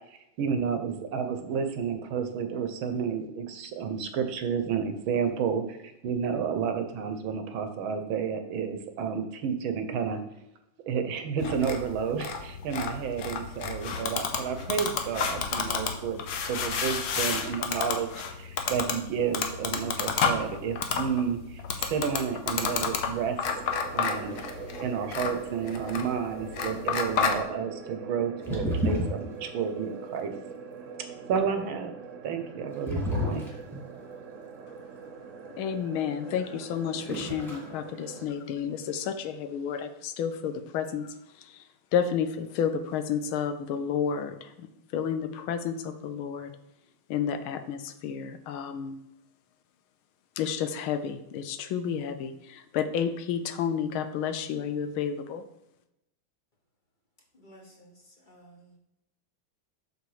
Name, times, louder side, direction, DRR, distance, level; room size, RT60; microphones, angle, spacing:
voice 1, 0.4-10.2 10.8-18.1 18.4-23.4 23.7-24.4 24.8-30.3 31.3-31.9 32.2-33.4, right 7 dB, 75° right, 8 dB, 1.7 m, -31 dB
sound 1, 11.4-27.4, left 6 dB, 60° left, 1.2 m, -31 dB
sound 2, 23.4-38.3, right 5 dB, 55° right, 0.9 m, -43 dB
sound 3, 24.3-24.6 28.4-29.4 32.9-34.0 36.6-36.8 37.1-37.7 37.9-38.5, equal, ahead, 1.9 m, -30 dB
voice 2, 35.5-41.6 41.9-46.5 47.1-49.0 50.4-55.5, left 7 dB, 80° left, 10 dB, 1.5 m, -31 dB
voice 3, 57.3-58.8, right 1 dB, 25° left, 0 dB, 1.3 m, -54 dB
7.0 x 6.6 x 4.9 m, 0.86 s
omnidirectional pair, 2.3 m